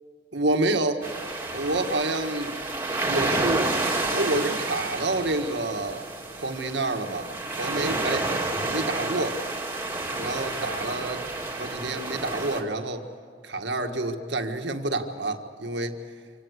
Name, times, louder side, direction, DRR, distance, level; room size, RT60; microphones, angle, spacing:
voice 1, 0.3-1.1 1.5-2.5 3.1-6.0 6.4-8.3 8.7-9.4 10.2-11.3 11.6-13.0 13.4-16.0, right 2 dB, 80° right, 5 dB, 1.8 m, -28 dB
sound 1, 1.0-12.6, right 2 dB, 15° right, 2.3 m, -30 dB
25.5 x 18.0 x 8.1 m, 2.2 s
head